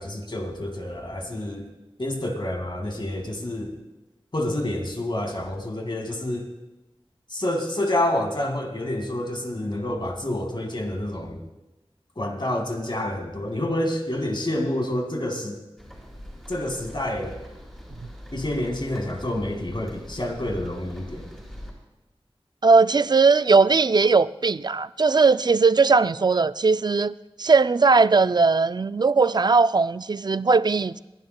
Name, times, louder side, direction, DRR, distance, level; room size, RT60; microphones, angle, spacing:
voice 1, 0.0-1.7 2.0-3.7 4.3-6.5 7.3-11.4 12.2-15.5 16.5-17.4 18.3-21.3, left 1 dB, 50° left, 2.0 m, -28 dB
sound 1, 15.8-21.7, equal, 5° left, 5.8 m, -42 dB
voice 2, 22.6-31.0, right 4 dB, 45° right, 0.3 m, -19 dB
26.0 x 11.5 x 2.3 m
wide cardioid pair, 55°, 10 cm